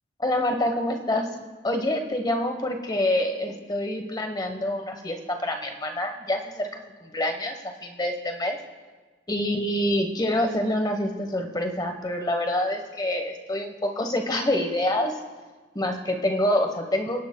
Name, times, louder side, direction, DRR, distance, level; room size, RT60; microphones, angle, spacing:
voice 1, 0.2-1.3 1.6-8.6 9.3-15.1 15.7-17.2, left 1 dB, 20° left, 5 dB, 1.0 m, -26 dB
27.5 x 10.5 x 2.2 m, 1.4 s
head